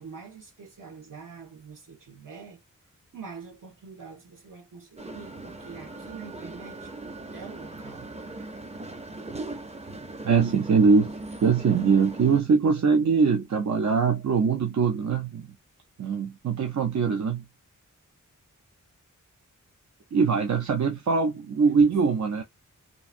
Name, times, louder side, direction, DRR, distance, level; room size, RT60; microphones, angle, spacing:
voice 1, 0.0-2.6 3.1-6.9 7.3-8.1 21.6-21.9, right 5 dB, 80° right, 1.4 m, -45 dB
sound 1, 5.0-12.4, right 2 dB, 20° right, 0.6 m, -39 dB
voice 2, 10.2-15.5 16.0-17.4 20.1-22.4, right 5 dB, 60° right, 0.6 m, -22 dB
3.0 x 2.6 x 2.5 m
wide cardioid pair, 95°, 32 cm